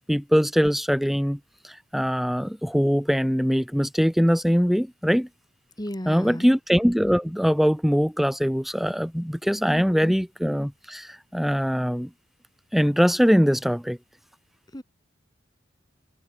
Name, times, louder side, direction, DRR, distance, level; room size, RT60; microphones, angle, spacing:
voice 1, 0.0-1.4 1.6-5.3 6.1-12.1 12.7-14.0, equal, ahead, 3.6 m, -22 dB
voice 2, 5.8-6.5 9.6-10.2 14.7-14.8, equal, 20° left, 4.4 m, -34 dB
open air
head